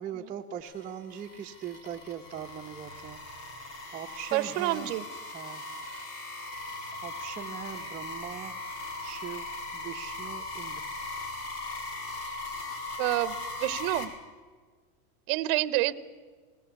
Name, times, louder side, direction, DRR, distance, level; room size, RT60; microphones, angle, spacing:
voice 1, 0.0-3.2 3.9-4.9 5.3-5.6 6.9-8.7 9.0-10.9, right 8 dB, 15° right, -3 dB, 1.0 m, -41 dB
sound 1, 0.6-14.0, left 2 dB, 70° left, 5.2 m, -39 dB
voice 2, 4.3-5.0 13.0-14.1 15.3-15.9, right 17 dB, 40° right, 15 dB, 1.0 m, -28 dB
20.5 x 18.5 x 8.3 m, 1.5 s
supercardioid pair, 145°, 47 cm